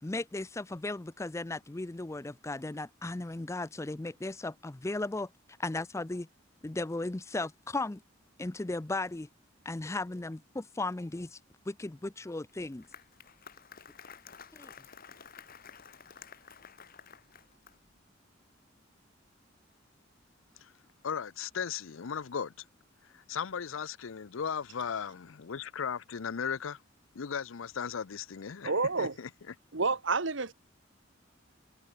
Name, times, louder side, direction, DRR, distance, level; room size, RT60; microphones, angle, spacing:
voice 1, 0.0-5.3 5.6-6.3 6.6-8.0 8.4-9.3 9.7-11.4 11.7-12.9 14.5-14.7, left 2 dB, 15° left, 0.4 m, -36 dB
Applause, 12.5-18.0, left 7 dB, 50° left, 2.0 m, -52 dB
voice 2, 21.0-22.5 23.0-26.8 27.1-28.7 29.0-29.3, left 7 dB, 85° left, 0.6 m, -36 dB
voice 3, 28.6-29.1 29.7-30.5, right 4 dB, 70° right, 1.6 m, -29 dB
head